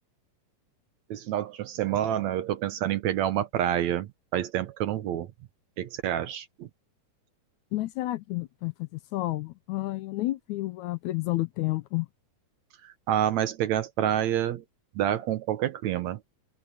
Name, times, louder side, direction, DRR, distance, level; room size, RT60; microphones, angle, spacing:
voice 1, 1.1-5.3 5.8-6.7 12.8-14.6 15.0-16.2, right 11 dB, 70° right, 2.0 m, -28 dB
voice 2, 7.7-12.1, left 18 dB, 80° left, 1.8 m, -30 dB
open air
omnidirectional pair, 3.9 m